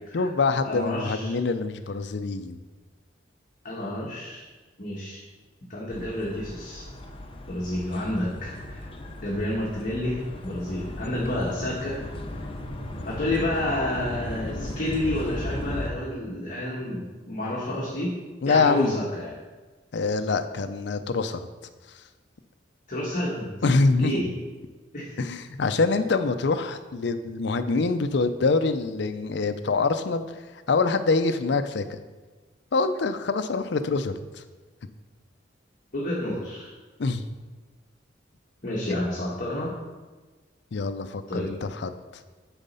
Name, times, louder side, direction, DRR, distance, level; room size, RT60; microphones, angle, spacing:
voice 1, 0.1-2.6 18.4-19.0 19.9-21.4 23.6-24.1 25.2-30.2 30.7-32.0 32.7-34.1 37.0-37.2 38.9-39.0 40.7-41.9, left 3 dB, 65° left, 10 dB, 0.5 m, -25 dB
voice 2, 0.6-1.4 3.6-4.4 4.8-5.2 5.7-6.8 7.5-8.9 9.2-12.0 12.4-12.5 13.0-18.1 18.4-19.3 22.9-23.5 24.0-24.3 24.9-25.2 35.9-36.7 38.6-39.7 41.3-41.5, left 1 dB, 45° left, -5 dB, 1.4 m, -29 dB
sound 1, 5.9-15.9, left 1 dB, 30° left, 0.7 m, -36 dB
9.0 x 4.1 x 5.5 m, 1.3 s
head